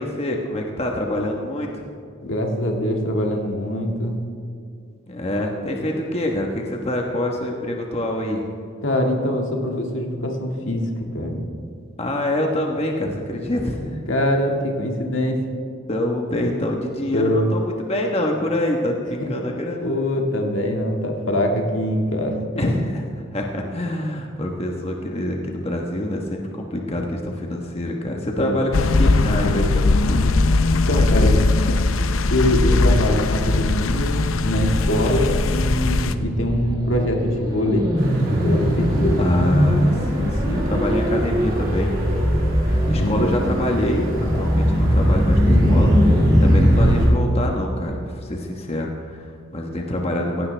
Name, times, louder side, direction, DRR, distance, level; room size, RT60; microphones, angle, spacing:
voice 1, 0.0-1.8 5.1-8.4 12.0-14.0 15.9-19.9 22.6-23.0 23.3-30.2 30.9-31.3 39.2-41.9 42.6-45.4 45.7-45.9 46.4-50.5, left 1 dB, 30° left, 1 dB, 1.2 m, -25 dB
voice 2, 2.2-4.2 8.8-11.4 14.1-15.5 17.1-17.5 19.8-22.6 28.4-28.9 30.7-31.3 32.3-37.9 38.4-39.2 40.2-40.6 42.9-43.4 45.4-45.9, left 1 dB, 70° left, 2 dB, 1.9 m, -23 dB
sound 1, 28.7-36.1, left 3 dB, 85° left, 0.6 m, -19 dB
sound 2, 34.2-47.1, equal, 20° right, 2.6 m, -20 dB
sound 3, 38.0-47.1, right 1 dB, 75° right, 2.9 m, -36 dB
16.5 x 16.5 x 3.4 m, 2.4 s
head